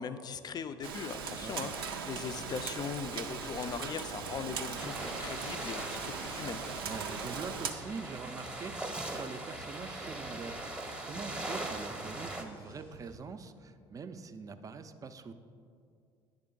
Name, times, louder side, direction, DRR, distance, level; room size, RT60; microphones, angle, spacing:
voice 1, 0.0-6.6, left 6 dB, 35° left, 11 dB, 0.4 m, -40 dB
Rain, 0.8-7.7, right 6 dB, 90° right, 0.4 m, -39 dB
voice 2, 1.3-1.7 6.8-15.3, right 5 dB, 30° right, 9 dB, 0.4 m, -44 dB
sound 1, 2.2-13.2, right 1 dB, 90° left, 0.7 m, -54 dB
sound 2, 4.8-12.4, right 2 dB, 10° right, 0.8 m, -40 dB
9.7 x 3.6 x 3.8 m, 2.4 s
hypercardioid pair, 60°, 12 cm